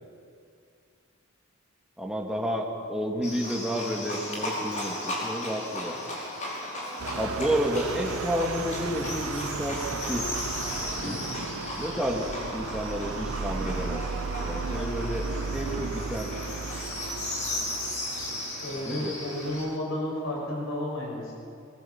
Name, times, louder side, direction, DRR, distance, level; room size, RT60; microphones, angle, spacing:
voice 1, 2.0-6.0 7.2-10.3 11.8-12.3 12.5-16.3 18.8-19.2, equal, 5° right, 0 dB, 2.3 m, -31 dB
Livestock farm animals working animals, 3.2-19.7, left 1 dB, 35° left, 5.1 m, -35 dB
sound 1, 7.0-19.8, right 5 dB, 70° right, 0.5 m, -36 dB
voice 2, 18.5-21.4, left 1 dB, 75° left, -2 dB, 7.1 m, -32 dB
22.5 x 21.0 x 7.3 m, 2.4 s
head